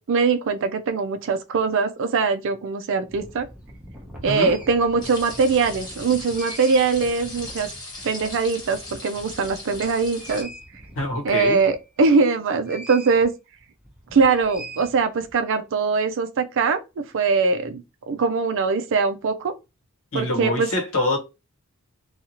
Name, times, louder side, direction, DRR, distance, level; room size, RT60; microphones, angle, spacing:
voice 1, 0.0-3.5 4.2-7.7 8.0-10.5 11.2-13.3 14.1-19.5 20.1-20.7, right 4 dB, 60° right, 0.4 m, -22 dB
sound 1, 3.1-12.1 12.6-13.3 13.6-15.4, right 1 dB, 5° right, 0.7 m, -42 dB
sound 2, 5.0-10.4, left 2 dB, 20° left, 1.1 m, -38 dB
voice 2, 10.9-11.6 20.1-21.2, left 2 dB, 65° left, 1.0 m, -24 dB
2.7 x 2.3 x 2.8 m
head